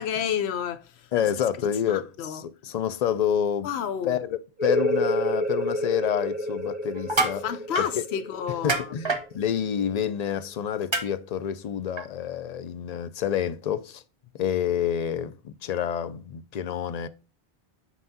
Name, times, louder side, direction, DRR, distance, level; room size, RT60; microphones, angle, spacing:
voice 1, 0.0-1.1 1.8-2.4 3.6-4.2 7.2-8.9, left 8 dB, 80° left, 0.9 m, -30 dB
voice 2, 1.1-3.7 4.0-7.5 7.8-7.9 8.6-14.0 14.4-17.1, left 9 dB, 55° left, 0.5 m, -28 dB
sound 1, 4.6-10.0, equal, 10° right, 1.1 m, -29 dB
sound 2, 7.0-7.4 7.8-7.9 8.7-9.2 10.9-11.0 12.0-12.1, right 3 dB, 30° right, 0.9 m, -25 dB
6.2 x 5.6 x 2.7 m
omnidirectional pair, 1.1 m